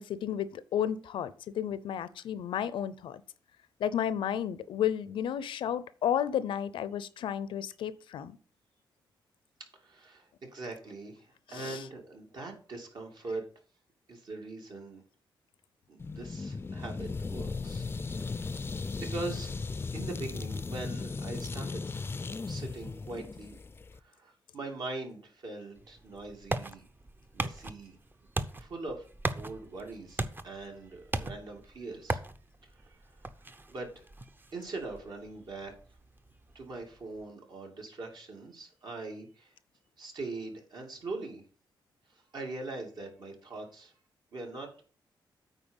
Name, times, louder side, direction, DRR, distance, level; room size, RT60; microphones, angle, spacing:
voice 1, 0.0-3.2 3.8-8.4 11.5-11.8, left 9 dB, 90° left, 0.6 m, -32 dB
voice 2, 9.7-13.4 14.1-15.0 15.9-17.8 18.3-18.7 19.0-19.5 19.9-21.8 22.5-23.6 24.0-26.8 27.3-28.0 28.6-29.0 29.3-32.2 32.7-33.2 33.7-34.0 34.5-35.7 36.5-39.5 40.0-41.4 42.1-43.9 44.3-44.7, right 3 dB, 60° right, 2.7 m, -42 dB
sound 1, 16.0-24.0, left 4 dB, 25° left, 0.5 m, -37 dB
sound 2, 25.8-37.2, right 2 dB, 25° right, 0.8 m, -39 dB
9.1 x 4.3 x 7.2 m
cardioid pair, 95°, 8 cm